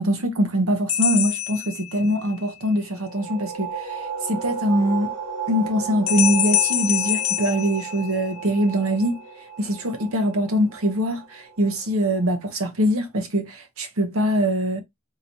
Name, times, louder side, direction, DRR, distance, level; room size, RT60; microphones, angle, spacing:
voice 1, 0.0-4.0 4.3-5.1 5.5-9.2 9.6-14.8, equal, 70° right, 0.9 m, -23 dB
sound 1, 0.9-2.4 6.1-8.6, left 12 dB, 65° left, 0.6 m, -25 dB
sound 2, 2.9-12.3, right 7 dB, 45° right, 2.7 m, -34 dB
4.0 x 2.8 x 2.9 m
head